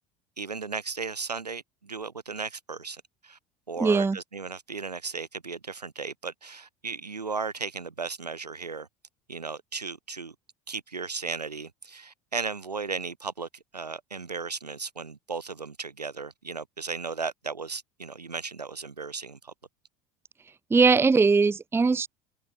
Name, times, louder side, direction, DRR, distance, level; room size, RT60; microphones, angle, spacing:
voice 1, 0.4-3.4 3.7-8.9 9.3-10.3 10.7-19.5, right 4 dB, 90° right, 2.4 m, -35 dB
voice 2, 3.8-4.2 20.7-22.1, right 4 dB, 10° right, 0.6 m, -20 dB
figure-of-eight pair, 65°, 20 cm